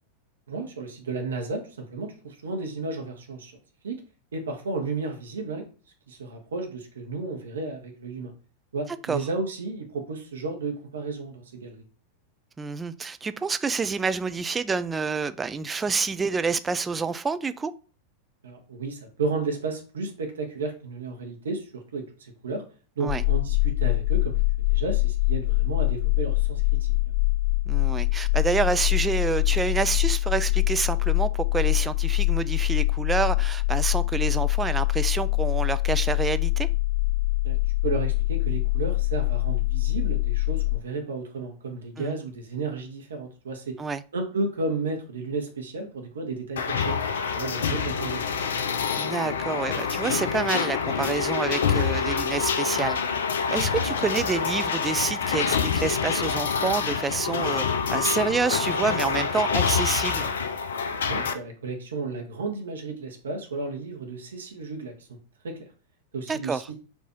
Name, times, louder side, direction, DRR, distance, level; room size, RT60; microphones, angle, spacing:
voice 1, 0.5-3.5 3.8-4.0 4.3-5.6 6.1-8.3 8.7-11.8 18.4-22.6 23.0-24.4 24.7-27.1 37.4-43.8 44.1-47.0 47.3-48.2 61.0-65.2 65.4-65.6 66.1-66.8, right 3 dB, 65° right, 1.0 m, -33 dB
voice 2, 12.6-17.7 23.0-23.2 27.7-36.7 42.0-42.2 43.8-44.0 49.0-53.0 53.5-60.3 66.3-66.6, right 5 dB, 15° right, 0.3 m, -28 dB
sound 1, 23.1-40.8, left 21 dB, 30° left, 1.4 m, -24 dB
sound 2, 46.6-61.3, left 6 dB, 65° left, 0.4 m, -26 dB
4.5 x 2.7 x 4.3 m
figure-of-eight pair, 90°, 0 cm